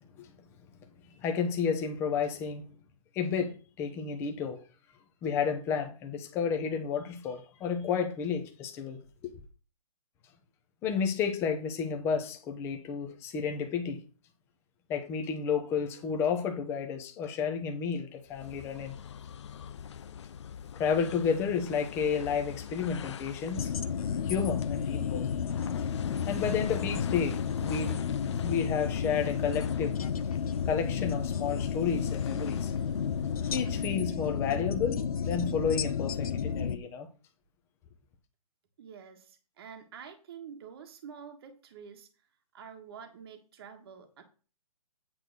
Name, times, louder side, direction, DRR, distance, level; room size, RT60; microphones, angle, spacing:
voice 1, 1.2-2.6 3.1-4.6 5.2-9.0 10.8-14.0 14.9-18.9 20.7-23.7 24.2-25.3 26.3-28.0 28.4-30.0 30.7-32.7 33.5-37.1, left 6 dB, 10° left, 0.9 m, -31 dB
sound 1, 18.3-34.1, left 8 dB, 45° left, 0.5 m, -43 dB
sound 2, 23.5-36.8, left 7 dB, 70° left, 0.9 m, -32 dB
voice 2, 38.8-42.1 42.5-44.2, right 7 dB, 40° right, 1.4 m, -48 dB
8.9 x 4.0 x 6.4 m
hypercardioid pair, 165°, 20 cm